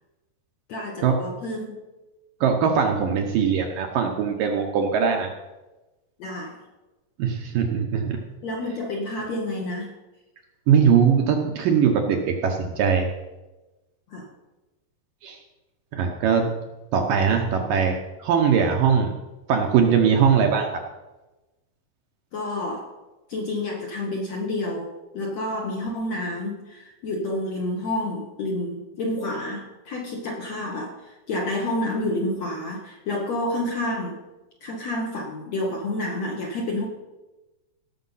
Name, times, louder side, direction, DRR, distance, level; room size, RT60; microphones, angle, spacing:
voice 1, 0.7-1.8 6.2-6.6 8.4-9.9 14.1-14.3 22.3-22.9 23.3-34.2 34.6-36.9, left 1 dB, 60° left, 0 dB, 1.8 m, -29 dB
voice 2, 2.4-5.3 7.2-8.2 10.7-13.1 15.2-15.4 15.9-16.5 16.9-19.1 19.5-20.8, right 7 dB, 70° right, 3 dB, 2.2 m, -21 dB
17.5 x 6.7 x 5.6 m, 1.1 s
omnidirectional pair, 4.8 m